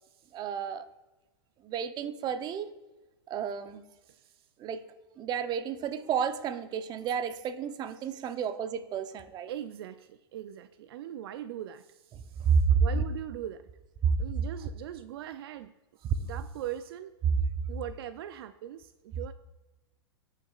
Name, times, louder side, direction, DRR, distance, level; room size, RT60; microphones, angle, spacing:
voice 1, 0.3-0.9 1.6-2.7 3.3-3.8 4.6-4.8 5.2-9.5 12.1-12.8 14.0-14.1 16.0-16.1, right 7 dB, 30° right, 11 dB, 0.7 m, -30 dB
voice 2, 4.1-4.5 9.5-13.7 14.2-15.7 16.0-17.2 17.7-19.3, right 11 dB, 65° right, 12 dB, 0.4 m, -41 dB
16.0 x 6.6 x 2.4 m, 1.1 s
hypercardioid pair, 115°, 14 cm